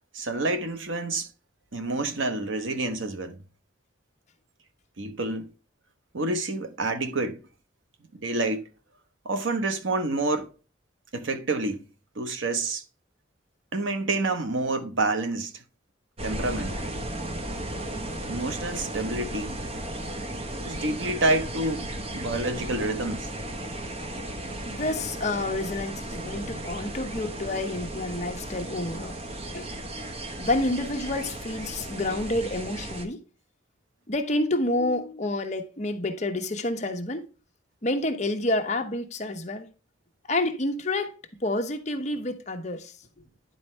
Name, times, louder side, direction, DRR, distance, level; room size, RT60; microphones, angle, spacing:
voice 1, 0.1-1.3 1.7-3.4 5.0-5.5 6.1-7.4 8.1-8.7 9.2-10.5 11.1-11.9 12.2-12.8 13.7-15.6 16.2-16.7 18.3-19.6 20.6-21.9 22.1-23.3, right 2 dB, 85° right, 1.0 m, -28 dB
sound 1, 16.2-33.1, right 1 dB, 30° right, 0.8 m, -35 dB
voice 2, 24.7-29.2 29.5-29.7 30.4-33.2 34.1-37.3 37.8-39.7 40.3-41.1 41.4-43.0, left 2 dB, 35° left, 0.9 m, -29 dB
10.5 x 4.4 x 3.2 m
head